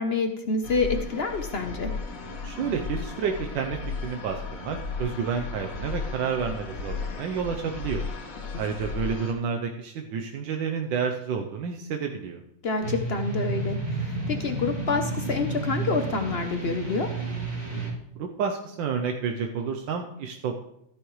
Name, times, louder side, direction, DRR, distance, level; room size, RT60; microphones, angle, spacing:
voice 1, 0.0-1.9 12.6-17.1, left 4 dB, 55° left, 6 dB, 0.7 m, -28 dB
sound 1, 0.6-9.3, left 4 dB, 80° left, 2.1 m, -35 dB
voice 2, 2.2-8.1 8.6-12.4 17.7-20.6, right 6 dB, 80° right, 3 dB, 1.5 m, -30 dB
sound 2, 12.8-17.9, right 2 dB, 20° right, 2.6 m, -31 dB
13.5 x 10.0 x 3.1 m, 0.78 s
omnidirectional pair, 2.0 m